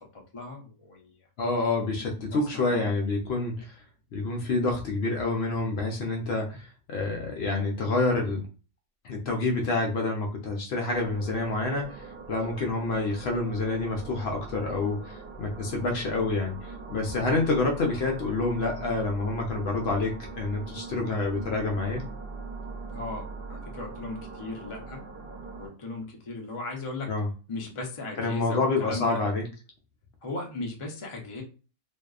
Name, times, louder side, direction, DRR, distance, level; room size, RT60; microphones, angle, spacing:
voice 1, 0.0-1.2 1.8-1.9 2.3-2.9 17.4-17.5 22.9-25.0 25.6-27.1 27.5-29.2 30.2-31.4, left 2 dB, 35° left, 0 dB, 0.5 m, -37 dB
voice 2, 1.4-3.8 4.1-8.5 9.0-22.1 27.1-27.3 28.2-29.5, left 3 dB, 65° left, 1 dB, 0.8 m, -28 dB
sound 1, 10.9-25.7, right 4 dB, 60° right, 0.8 m, -41 dB
2.6 x 2.3 x 2.3 m, 0.34 s
omnidirectional pair, 1.3 m